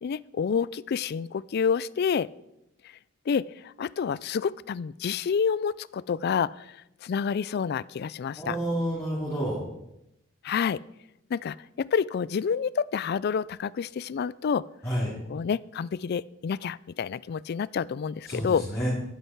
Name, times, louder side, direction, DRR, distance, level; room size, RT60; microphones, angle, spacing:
voice 1, 0.0-2.3 3.3-6.8 7.0-8.6 10.4-10.8 11.3-14.6 15.3-18.6, left 6 dB, 55° left, 21 dB, 0.3 m, -28 dB
voice 2, 8.4-9.6 14.8-15.1 18.3-18.9, equal, 15° left, -8 dB, 3.5 m, -29 dB
11.5 x 11.0 x 4.6 m, 0.84 s
head